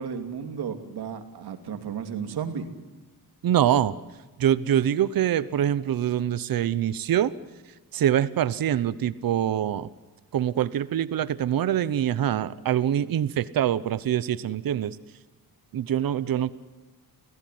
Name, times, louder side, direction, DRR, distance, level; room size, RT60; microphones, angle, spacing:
voice 1, 0.0-2.7 16.0-16.4, right 7 dB, 90° right, 6 dB, 2.9 m, -34 dB
voice 2, 3.4-3.9 4.4-7.3 7.9-9.9 10.3-15.0 15.7-16.5, right 10 dB, 65° right, 15 dB, 0.9 m, -24 dB
30.0 x 16.0 x 9.4 m, 1.2 s
wide cardioid pair, 145°, 38 cm